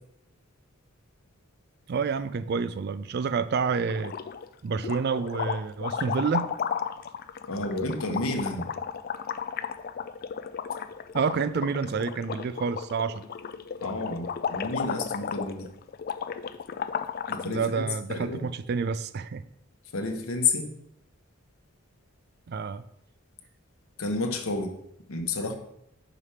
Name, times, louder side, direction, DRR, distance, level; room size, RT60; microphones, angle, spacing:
voice 1, 1.9-4.1 4.6-6.5 11.1-13.2 17.4-19.5 22.5-22.8, right 5 dB, 50° right, 14 dB, 0.3 m, -28 dB
sound 1, 3.8-4.5 4.8-17.5, left 7 dB, 45° left, 0.3 m, -34 dB
voice 2, 7.5-8.7 13.8-15.7 17.3-18.5 19.9-20.7 24.0-24.7 25.1-25.5, left 3 dB, 80° left, 4 dB, 1.0 m, -30 dB
5.0 x 4.8 x 5.7 m, 0.75 s
head